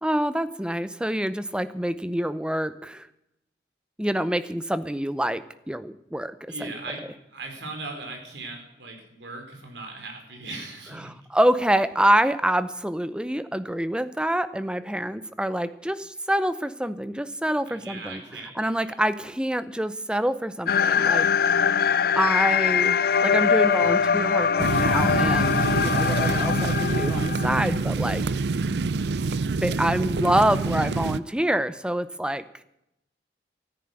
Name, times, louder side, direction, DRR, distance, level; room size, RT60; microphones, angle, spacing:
voice 1, 0.0-3.1 4.0-6.7 11.0-18.2 18.6-21.3 22.2-28.2 29.6-32.4, right 1 dB, 5° right, 13 dB, 0.6 m, -26 dB
voice 2, 6.5-7.0 7.3-11.1 17.7-18.9, right 3 dB, 80° right, 3 dB, 4.2 m, -38 dB
sound 1, 20.7-27.8, left 6 dB, 55° left, 0.5 m, -22 dB
sound 2, 24.6-31.2, right 3 dB, 65° right, 0.5 m, -26 dB
14.0 x 10.0 x 7.7 m, 0.82 s
head